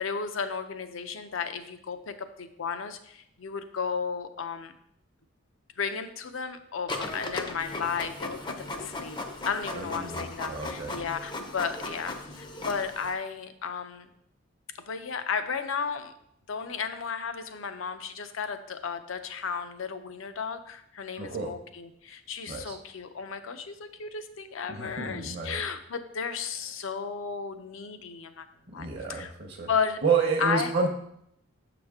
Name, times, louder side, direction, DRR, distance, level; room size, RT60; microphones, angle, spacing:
voice 1, 0.0-4.7 5.8-9.2 9.5-14.1 14.9-16.1 16.5-28.5 28.7-29.3 29.7-30.0 30.4-30.7, left 6 dB, 75° left, 9 dB, 0.6 m, -34 dB
Printer, 6.9-13.1, left 2 dB, 20° left, 0.5 m, -37 dB
voice 2, 9.8-10.9 21.2-21.5 22.5-22.8 24.7-25.6 28.7-29.7 30.0-30.9, right 5 dB, 50° right, 2 dB, 0.7 m, -30 dB
7.1 x 5.0 x 3.5 m, 0.75 s
head